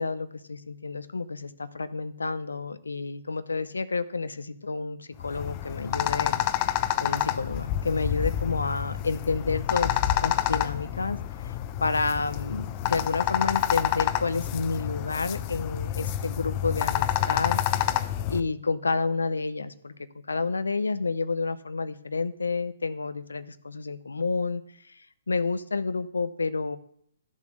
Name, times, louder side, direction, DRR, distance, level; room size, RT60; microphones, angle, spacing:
voice 1, 0.0-6.4 7.0-11.2 11.4-11.5 11.8-17.6 18.3-19.9 20.3-26.8, left 4 dB, 85° left, 13 dB, 0.6 m, -30 dB
sound 1, 5.2-18.4, left 12 dB, 35° left, 0.7 m, -28 dB
12.5 x 7.4 x 6.3 m, 0.67 s
hypercardioid pair, 135°, 0 cm